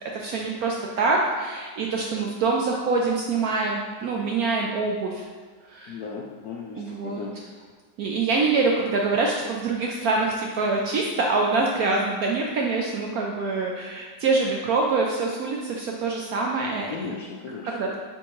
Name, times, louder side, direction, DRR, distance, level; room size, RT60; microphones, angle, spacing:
voice 1, 0.0-5.2 5.7-6.0 6.8-7.2 8.0-17.1 17.7-18.0, right 3 dB, 75° right, -1 dB, 0.8 m, -25 dB
voice 2, 5.9-7.5 16.7-18.0, left 5 dB, 75° left, -1 dB, 0.8 m, -37 dB
8.9 x 3.5 x 3.0 m, 1.5 s
omnidirectional pair, 2.0 m